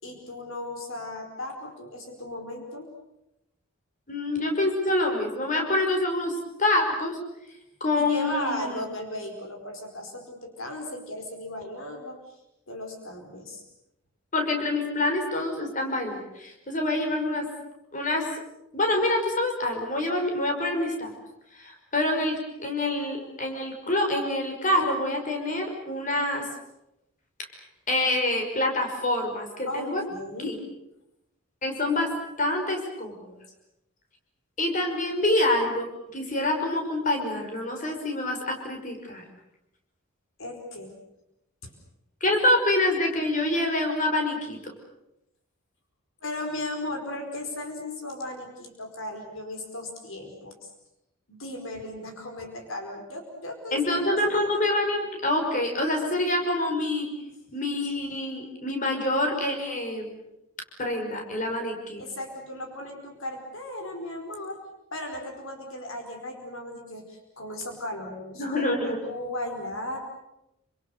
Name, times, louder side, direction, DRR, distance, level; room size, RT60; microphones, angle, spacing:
voice 1, 0.0-2.9 7.9-12.4 12.7-13.6 29.7-30.6 40.4-40.9 41.6-41.7 46.2-50.5 51.3-54.0 54.2-54.3 62.0-64.6 64.9-70.0, left 1 dB, 65° left, 4 dB, 4.8 m, -36 dB
voice 2, 4.1-7.2 7.8-8.8 14.3-17.5 17.9-18.3 18.7-21.1 21.5-26.5 27.9-30.0 30.4-30.6 31.6-32.1 32.4-33.4 34.6-35.9 36.1-39.2 42.2-44.7 53.7-57.1 57.5-60.1 60.8-62.0 68.4-69.0, left 1 dB, 35° left, 3 dB, 5.6 m, -26 dB
28.5 x 27.0 x 6.8 m, 0.87 s
head